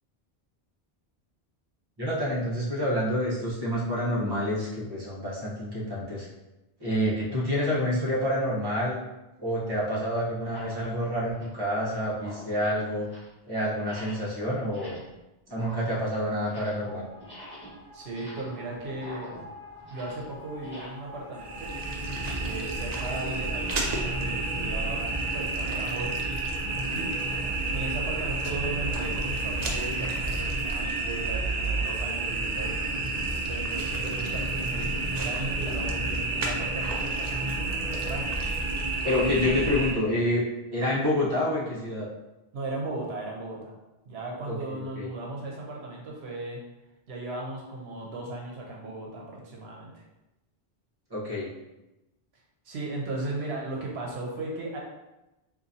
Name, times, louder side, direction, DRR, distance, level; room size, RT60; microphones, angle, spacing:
voice 1, 2.0-6.3 6.8-9.0 9.4-13.1 13.5-15.0 15.5-17.0 39.0-40.5 40.7-42.1 44.4-45.1 51.1-51.5, left 1 dB, 25° right, -6 dB, 0.9 m, -28 dB
sound 1, 8.9-9.0 9.7-9.8 10.3-10.8 11.2-11.7 12.1-12.6 12.9-13.4 13.8-14.3 14.6-15.2 15.5-16.9 17.2-20.9, equal, 10° left, 1.4 m, -47 dB
sound 2, 16.8-27.9, left 1 dB, 50° left, 1.4 m, -47 dB
voice 2, 17.9-19.3 19.9-21.7 22.4-25.1 25.3-26.2 26.9-27.1 27.7-32.8 33.5-38.4 42.5-43.7 44.0-46.6 47.1-50.0 52.7-54.8, right 2 dB, 80° right, -2 dB, 0.9 m, -36 dB
sound 3, 21.3-39.9, right 2 dB, 50° right, 0.5 m, -30 dB
3.9 x 2.6 x 2.7 m, 0.97 s
omnidirectional pair, 1.1 m